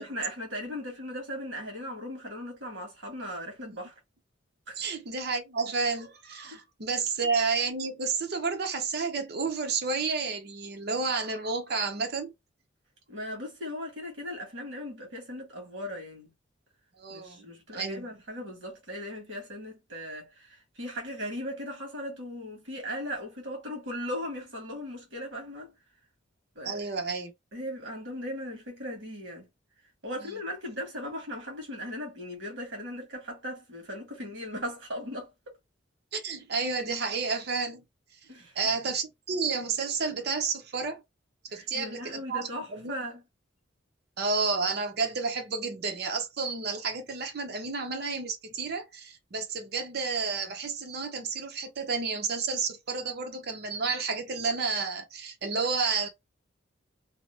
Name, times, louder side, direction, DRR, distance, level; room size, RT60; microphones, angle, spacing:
voice 1, 0.0-3.9 4.7-4.8 6.5-6.6 13.1-16.3 17.1-25.8 26.5-26.8 27.5-29.5 30.0-35.3 38.3-38.5 41.5-43.2, equal, 70° right, 1.4 m, -38 dB
voice 2, 4.8-12.3 17.0-17.5 17.7-18.1 26.6-27.3 30.2-30.4 36.1-37.8 38.6-41.0 41.5-42.9 44.2-56.1, right 4 dB, 55° right, 0.7 m, -31 dB
2.8 x 2.0 x 2.9 m
head